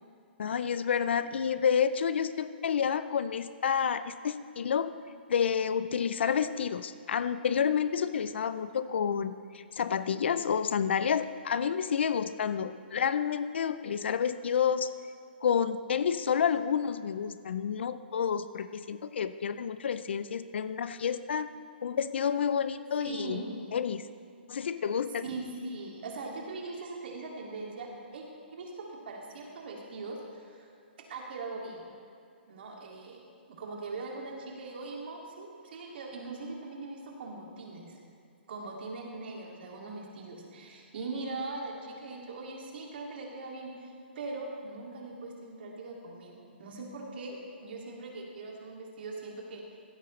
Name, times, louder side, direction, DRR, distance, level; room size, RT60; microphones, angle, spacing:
voice 1, 0.4-4.9 5.3-14.9 15.4-21.5 21.8-23.4 23.7-24.0 24.5-25.2, left 7 dB, 75° left, 13 dB, 0.4 m, -29 dB
voice 2, 23.0-23.8 25.2-28.2 28.5-30.7 31.1-31.9 32.5-33.2 33.5-38.0 38.5-47.4 47.6-49.8, right 3 dB, 60° right, -1 dB, 2.3 m, -41 dB
15.5 x 8.5 x 3.2 m, 2.5 s
hypercardioid pair, 155°, 6 cm